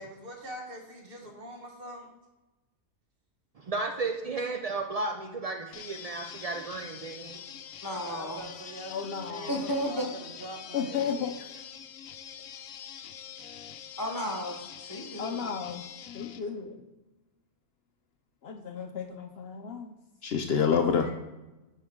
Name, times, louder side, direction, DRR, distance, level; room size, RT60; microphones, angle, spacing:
voice 1, 0.0-2.1 8.1-11.3 21.0-21.1, right 1 dB, 45° right, 1 dB, 1.4 m, -44 dB
voice 2, 3.6-7.4, right 3 dB, 75° right, 3 dB, 0.3 m, -34 dB
sound 1, 5.7-16.4, left 9 dB, 80° left, 1.0 m, -45 dB
voice 3, 7.8-8.5 9.5-10.1 14.0-15.5, equal, 20° left, 0 dB, 0.8 m, -33 dB
voice 4, 8.9-9.6 10.7-11.6 15.2-15.8 16.1-16.8 18.4-19.9 20.2-21.1, left 6 dB, 60° left, 5 dB, 0.7 m, -30 dB
9.5 x 4.6 x 3.6 m, 1.1 s
omnidirectional pair, 1.4 m